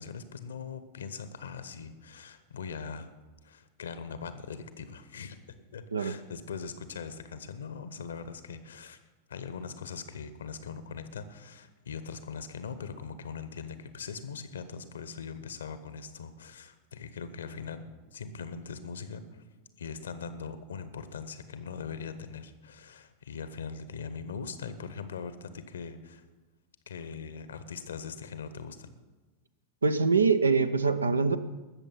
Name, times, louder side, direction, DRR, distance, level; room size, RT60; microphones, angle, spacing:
voice 1, 0.0-3.1 3.4-5.4 5.7-9.0 9.3-19.4 19.8-26.3 26.9-28.9, left 5 dB, 65° left, 12 dB, 0.9 m, -41 dB
voice 2, 29.8-31.4, right 4 dB, 75° right, 12 dB, 0.6 m, -24 dB
19.5 x 7.0 x 5.7 m, 1.2 s
figure-of-eight pair, 90°, 0 cm